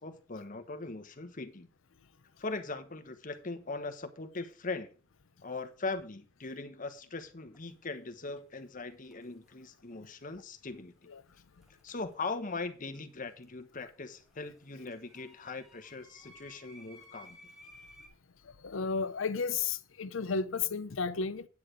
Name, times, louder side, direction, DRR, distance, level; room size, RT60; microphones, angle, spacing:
voice 1, 0.0-1.7 2.4-4.9 5.4-10.9 11.8-17.4, left 3 dB, 40° left, 1.1 m, -40 dB
sound 1, 7.5-7.7 8.9-9.5 11.6-12.6 12.9-18.1, left 1 dB, ahead, 2.8 m, -58 dB
voice 2, 18.4-21.5, left 5 dB, 70° left, 0.7 m, -33 dB
9.6 x 6.6 x 5.0 m
head